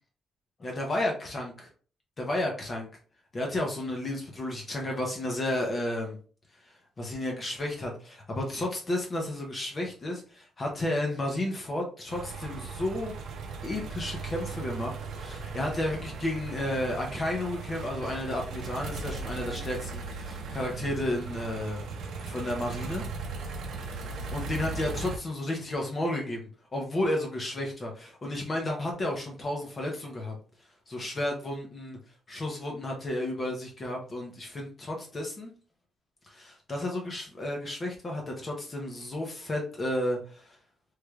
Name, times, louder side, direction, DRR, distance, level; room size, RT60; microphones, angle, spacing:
voice 1, 0.6-1.5 2.2-2.9 3.3-6.2 7.0-13.1 13.6-21.9 22.3-23.0 24.3-26.4 26.7-30.3 30.9-32.0 32.3-35.5 36.3-40.6, left 1 dB, 25° left, 1 dB, 0.6 m, -32 dB
Construction Bulldozer Diesel, 12.1-25.2, right 4 dB, 70° right, 0.6 m, -38 dB
3.2 x 3.1 x 2.3 m, 0.41 s
cardioid pair, 170°, 0 cm